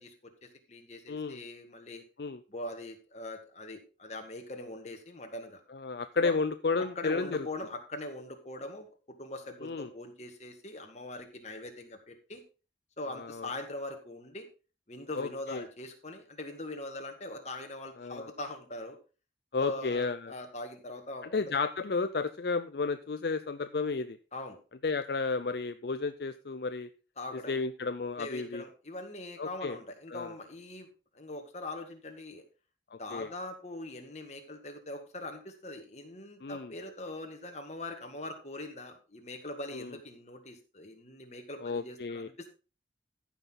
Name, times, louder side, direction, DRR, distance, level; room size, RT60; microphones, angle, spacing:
voice 1, 0.0-2.0 2.5-5.6 6.2-6.3 6.8-12.4 13.0-14.5 14.9-19.0 19.6-21.6 24.3-24.6 27.2-27.6 28.2-30.9 31.1-32.4 33.0-42.5, left 2 dB, 40° left, 4 dB, 1.9 m, -42 dB
voice 2, 1.1-1.4 2.2-2.4 5.7-7.5 9.6-9.9 13.1-13.5 15.2-15.7 18.0-18.3 19.5-20.3 21.3-24.2 24.8-26.9 27.3-28.6 29.4-29.8 30.1-30.3 32.9-33.3 36.4-36.7 39.7-40.0 41.6-42.3, left 4 dB, 60° left, 10 dB, 0.5 m, -32 dB
14.5 x 6.0 x 3.9 m, 0.34 s
head